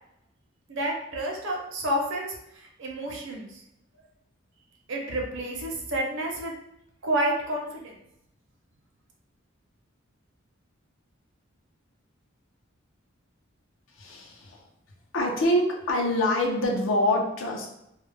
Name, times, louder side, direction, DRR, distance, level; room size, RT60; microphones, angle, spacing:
voice 1, 0.7-2.3 2.8-3.5 4.9-6.5 7.0-7.9, right 1 dB, 65° right, 0 dB, 0.6 m, -29 dB
voice 2, 14.0-14.6 15.1-17.7, left 1 dB, 75° left, 0 dB, 0.6 m, -25 dB
2.3 x 2.0 x 3.2 m, 0.81 s
head